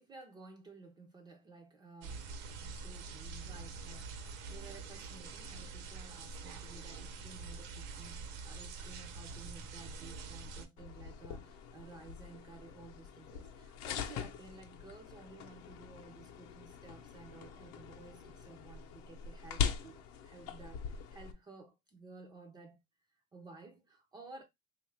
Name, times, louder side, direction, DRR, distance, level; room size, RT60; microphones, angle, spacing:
voice 1, 0.0-2.3 2.6-22.8 23.3-24.4, right 3 dB, 15° right, 0.3 m, -54 dB
sound 1, 2.0-10.7, right 4 dB, 70° right, 0.7 m, -45 dB
sound 2, 10.8-21.3, left 7 dB, 65° left, 0.6 m, -42 dB
3.4 x 2.4 x 3.1 m
cardioid pair, 170°, 29 cm